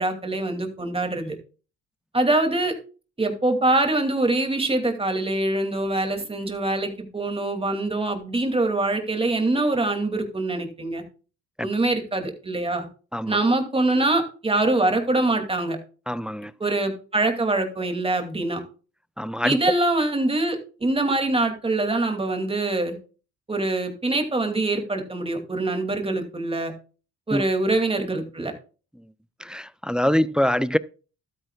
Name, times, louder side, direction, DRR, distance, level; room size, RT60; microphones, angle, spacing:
voice 1, 0.0-1.4 2.1-2.7 3.2-11.0 11.6-12.9 13.3-15.8 16.6-18.6 19.4-23.0 23.5-26.7 27.3-28.5, right 2 dB, 20° right, 2.5 m, -24 dB
voice 2, 16.1-16.5 19.2-19.6 27.3-27.4 29.4-30.8, equal, 5° right, 0.4 m, -24 dB
12.5 x 9.3 x 2.3 m
cardioid pair, 90°, 30 cm